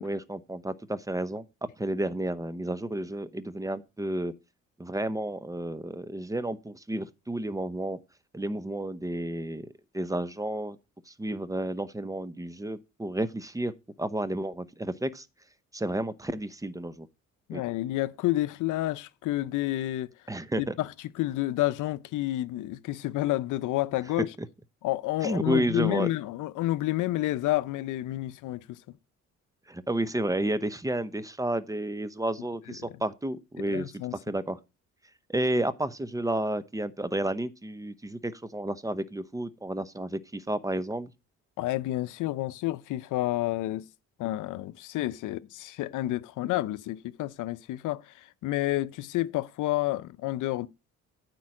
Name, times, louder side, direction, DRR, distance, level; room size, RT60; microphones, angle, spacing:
voice 1, 0.0-1.4 1.8-4.3 4.8-8.0 8.3-9.7 9.9-10.8 11.1-13.7 14.0-15.3 15.7-17.1 17.5-17.6 20.3-20.7 25.2-26.1 29.7-34.6 35.3-41.1, right 1 dB, 10° right, 0.7 m, -31 dB
voice 2, 17.5-20.1 20.6-20.9 21.2-24.3 24.8-29.0 32.7-32.8 33.7-34.1 41.6-43.9 44.2-50.7, left 16 dB, 85° left, 0.6 m, -30 dB
9.3 x 4.5 x 7.5 m
cardioid pair, 90°, 30 cm